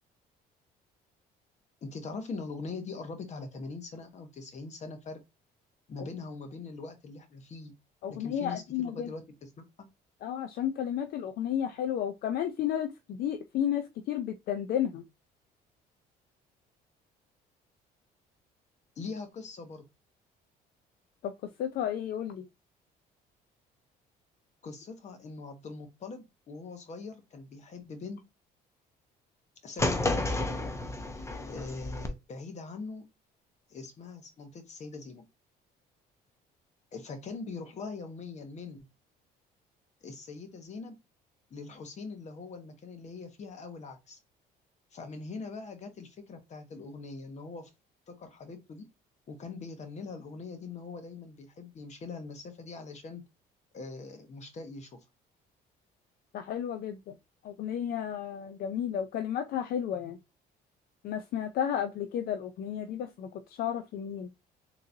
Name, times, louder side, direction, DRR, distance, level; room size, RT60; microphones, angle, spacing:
voice 1, 1.8-5.2 5.9-7.7 8.1-9.9 19.0-19.8 24.6-28.2 29.6-30.5 31.5-33.1 33.7-35.2 36.9-38.9 40.0-41.0 41.5-44.2 44.9-47.7 48.1-48.8 49.3-53.2 53.7-55.0, left 4 dB, 45° left, 1.1 m, -42 dB
voice 2, 8.0-9.1 10.2-15.0 21.2-21.3 21.6-22.5 56.3-57.2 57.4-60.2 61.0-64.3, left 9 dB, 65° left, 0.5 m, -32 dB
sound 1, 29.8-32.1, left 2 dB, 15° left, 0.7 m, -31 dB
3.8 x 3.0 x 2.7 m
cardioid pair, 110°, 17 cm